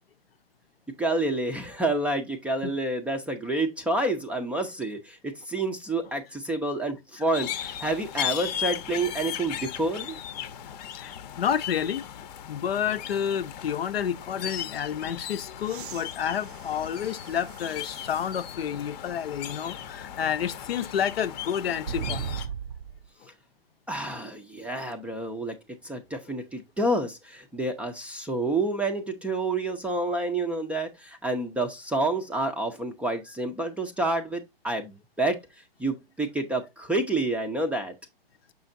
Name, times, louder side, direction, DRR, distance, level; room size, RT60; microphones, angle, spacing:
voice 1, 1.0-10.2 23.9-25.6 25.8-35.4 35.8-37.9, right 2 dB, 5° right, 0.5 m, -29 dB
sound 1, 7.3-22.5, left 10 dB, 40° left, 0.8 m, -37 dB
voice 2, 10.7-22.5, left 9 dB, 75° left, 0.7 m, -30 dB
sound 2, 15.6-18.4 19.0-19.1 21.8-23.1 24.9-25.0, right 8 dB, 55° right, 0.5 m, -38 dB
6.9 x 5.6 x 2.6 m
hypercardioid pair, 125°, 30 cm